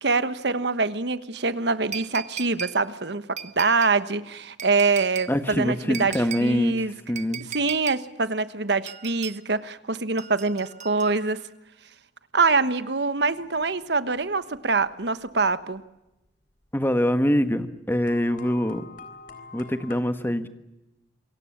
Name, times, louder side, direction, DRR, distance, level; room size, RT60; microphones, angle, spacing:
voice 1, 0.0-6.1 6.4-6.9 7.5-11.4 12.3-15.8, right 4 dB, 65° right, 13 dB, 1.2 m, -24 dB
sound 1, 1.9-2.8 3.4-4.0 4.6-5.3 5.9-6.5 7.1-8.0 8.9-9.4 10.2-11.4 12.4-12.5, right 8 dB, 40° right, 1.0 m, -37 dB
voice 2, 5.3-7.4 16.7-18.8 19.5-20.5, equal, 10° left, 10 dB, 1.5 m, -24 dB
sound 2, 13.2-15.8 16.2-16.3 16.6-16.7 18.1-19.9, left 4 dB, 50° left, 3.7 m, -47 dB
27.0 x 23.5 x 7.3 m, 0.94 s
head